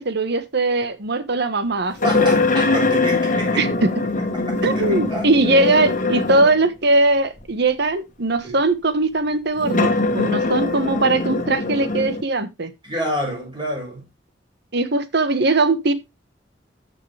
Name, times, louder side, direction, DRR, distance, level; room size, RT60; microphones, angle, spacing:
voice 1, 0.0-2.3 3.6-3.9 4.6-12.7 14.7-15.9, right 2 dB, 65° right, 1.3 m, -20 dB
sound 1, 2.0-6.7 7.4-7.5 9.6-12.2, left 3 dB, 45° left, 1.5 m, -22 dB
voice 2, 2.0-3.6 4.5-5.3 8.4-8.6 12.8-14.0, equal, 25° right, 6.2 m, -28 dB
13.0 x 6.8 x 3.3 m
head